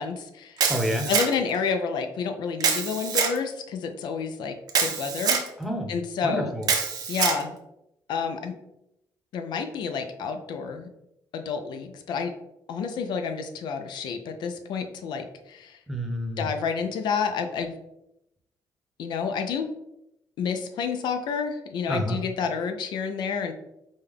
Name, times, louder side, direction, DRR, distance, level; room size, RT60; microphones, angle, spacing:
voice 1, 0.0-0.6 1.1-4.6 4.8-5.4 5.9-6.5 7.1-7.6 8.1-8.5 9.3-10.9 11.3-12.3 12.7-15.8 16.4-17.7 19.0-19.7 20.4-23.5, left 6 dB, 70° left, 6 dB, 0.5 m, -29 dB
Camera, 0.6-1.6 2.6-3.4 4.7-5.5 6.6-7.4, right 6 dB, 60° right, 0.7 m, -25 dB
voice 2, 0.7-1.1 5.6-5.9 6.2-6.7 15.9-16.5 21.9-22.2, equal, ahead, 1 dB, 0.9 m, -28 dB
5.2 x 2.2 x 3.6 m, 0.84 s
cardioid pair, 105°, 8 cm